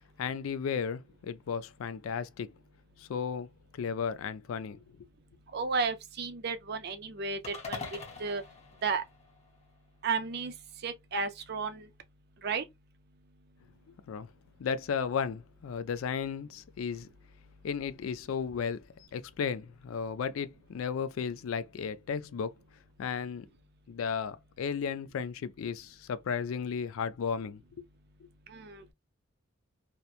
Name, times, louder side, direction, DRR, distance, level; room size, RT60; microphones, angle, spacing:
voice 1, 0.2-2.5 3.0-3.5 3.7-4.8 14.1-14.3 14.6-17.1 17.6-18.8 19.1-22.5 23.0-23.5 23.9-27.6 28.2-28.3, left 6 dB, 75° left, 0.3 m, -34 dB
voice 2, 5.5-7.4 7.7-7.8 8.2-8.4 8.8-9.0 10.0-10.5 10.8-11.8 12.4-12.6 28.5-28.9, right 5 dB, 50° right, 0.5 m, -33 dB
sound 1, 7.4-9.8, left 4 dB, 30° left, 0.8 m, -43 dB
2.9 x 2.1 x 2.4 m
head